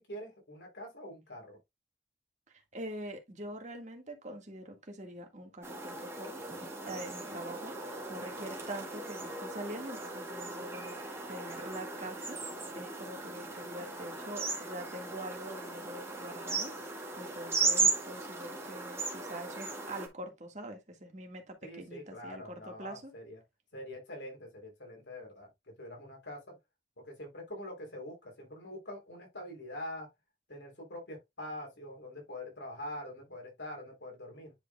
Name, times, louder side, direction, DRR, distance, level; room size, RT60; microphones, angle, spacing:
voice 1, 0.0-1.6 21.6-23.4 23.7-26.6 27.0-30.1 30.5-34.5, left 1 dB, 85° left, 3.5 m, -44 dB
voice 2, 2.5-6.4 6.8-12.4 12.7-23.1, right 1 dB, 40° right, 1.7 m, -44 dB
sound 1, 5.6-20.1, right 3 dB, 15° right, 2.2 m, -37 dB
10.0 x 4.7 x 2.3 m
head